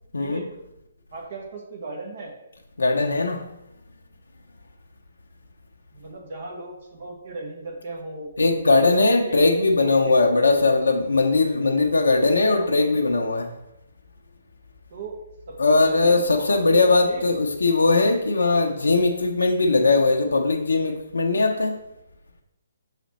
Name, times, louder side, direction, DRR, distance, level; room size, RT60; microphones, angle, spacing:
voice 1, 1.1-2.3 5.9-8.3 8.8-10.3 12.3-13.0 14.9-15.2 15.5-15.6 15.8-16.8 17.0-17.3, right 3 dB, 55° right, 1.4 m, -37 dB
voice 2, 2.8-3.5 8.4-13.5 15.6-21.8, left 3 dB, 80° left, 0.6 m, -20 dB
5.7 x 4.1 x 4.2 m
figure-of-eight pair, 140°, 0 cm